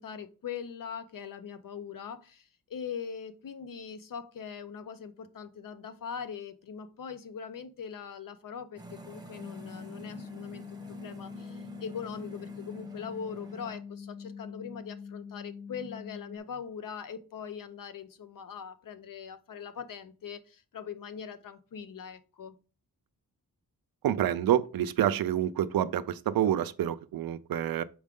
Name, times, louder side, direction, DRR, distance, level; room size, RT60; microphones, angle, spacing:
voice 1, 0.0-22.5, left 7 dB, 60° left, 0.7 m, -41 dB
sound 1, 8.8-13.8, right 2 dB, 10° right, 0.9 m, -49 dB
sound 2, 9.4-16.4, left 6 dB, 10° left, 0.4 m, -44 dB
voice 2, 24.0-27.8, right 11 dB, 70° right, 0.5 m, -27 dB
6.3 x 4.7 x 3.6 m
wide cardioid pair, 165°, 37 cm